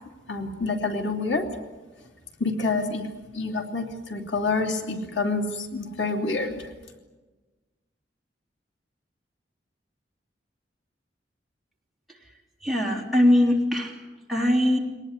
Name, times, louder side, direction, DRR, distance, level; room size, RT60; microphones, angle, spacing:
voice 1, 0.3-1.5 2.4-3.1 3.3-6.7, left 3 dB, 85° left, 4 dB, 2.9 m, -27 dB
voice 2, 12.6-14.0 14.3-14.8, left 1 dB, ahead, 1 dB, 3.4 m, -21 dB
24.0 x 19.0 x 9.9 m, 1.3 s
head